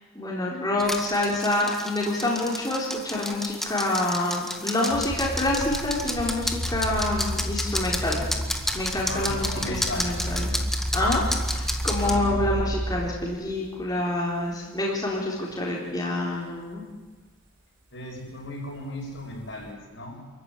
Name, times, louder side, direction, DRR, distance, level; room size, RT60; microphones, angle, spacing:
voice 1, 0.1-8.2 8.7-10.5 10.9-16.9, left 1 dB, 20° left, -4 dB, 4.1 m, -27 dB
sound 1, 0.8-12.2, left 1 dB, ahead, 1.9 m, -32 dB
sound 2, 4.9-13.7 14.4-14.8 15.4-15.5 19.0-19.7, equal, 45° right, 5.4 m, -31 dB
voice 2, 9.1-10.1 12.0-12.6 17.9-20.2, left 1 dB, 60° left, -1 dB, 7.5 m, -36 dB
29.0 x 14.5 x 9.8 m, 1.3 s
head